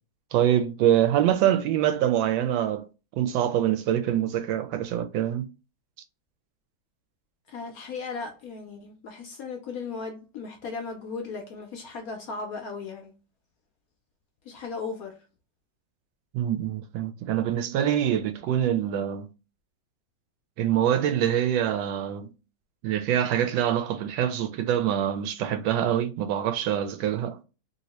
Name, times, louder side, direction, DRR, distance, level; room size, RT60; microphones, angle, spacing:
voice 1, 0.3-2.9 3.2-5.5 16.3-19.3 20.6-22.3 22.8-27.4, right 10 dB, 85° right, 1.3 m, -25 dB
voice 2, 7.5-13.1 14.4-15.1, left 4 dB, 70° left, 0.9 m, -36 dB
3.0 x 2.8 x 2.9 m
omnidirectional pair, 2.0 m